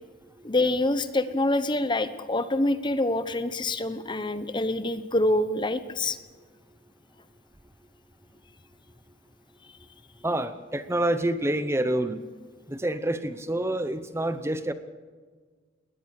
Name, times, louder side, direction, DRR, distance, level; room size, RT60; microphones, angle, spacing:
voice 1, 0.4-6.2, left 2 dB, 25° left, 12 dB, 1.0 m, -26 dB
voice 2, 10.2-12.2 12.7-14.7, right 1 dB, 15° right, 11 dB, 0.9 m, -27 dB
21.0 x 19.0 x 6.5 m, 1.5 s
head